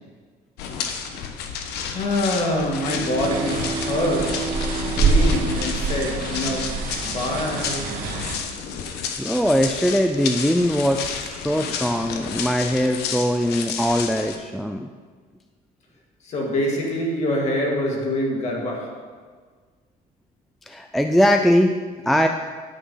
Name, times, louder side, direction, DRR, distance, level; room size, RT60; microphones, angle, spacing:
sound 1, 0.6-14.4, left 6 dB, 85° left, 1.1 m, -31 dB
voice 1, 1.9-8.0 16.2-19.1, left 1 dB, 45° left, 2.2 m, -25 dB
Bowed string instrument, 2.7-7.3, right 2 dB, 40° right, 2.0 m, -32 dB
sound 2, 3.2-8.4, right 3 dB, 60° right, 1.9 m, -25 dB
voice 2, 9.2-14.9 20.7-21.7 22.1-22.3, equal, ahead, 0.3 m, -21 dB
10.0 x 8.3 x 5.6 m
cardioid pair, 170°, 17 cm